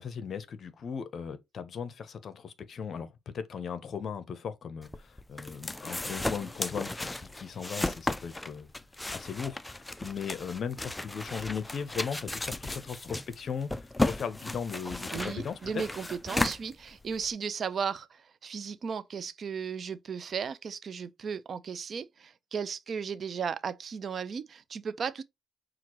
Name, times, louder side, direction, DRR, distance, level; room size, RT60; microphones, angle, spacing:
voice 1, 0.0-3.1 3.3-4.9 5.3-8.7 9.1-13.7 14.0-15.8, left 6 dB, 55° left, 0.7 m, -37 dB
sound 1, 4.8-17.3, left 2 dB, 10° left, 0.3 m, -35 dB
voice 2, 15.1-25.2, right 6 dB, 50° right, 0.4 m, -35 dB
5.8 x 2.5 x 3.0 m
cardioid pair, 90°, 0 cm